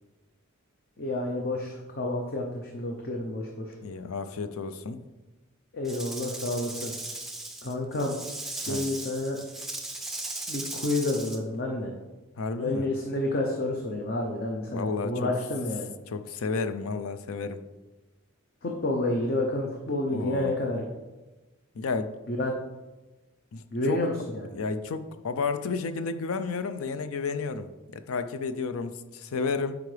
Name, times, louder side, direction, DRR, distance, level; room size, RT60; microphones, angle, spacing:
voice 1, 1.0-3.7 5.7-6.9 7.6-8.2 8.5-9.4 10.5-11.9 12.6-15.9 18.6-20.8 22.3-22.5 23.7-24.5, left 2 dB, 45° left, 1 dB, 0.7 m, -29 dB
voice 2, 3.8-5.0 8.7-8.9 12.4-12.9 14.7-15.3 16.1-17.6 20.1-20.6 21.7-22.1 23.5-24.1 24.5-29.8, left 4 dB, 80° left, 11 dB, 0.5 m, -32 dB
Rattle / Rattle (instrument), 5.8-11.4, right 2 dB, ahead, 0.5 m, -37 dB
8.1 x 4.9 x 3.3 m, 1.1 s
head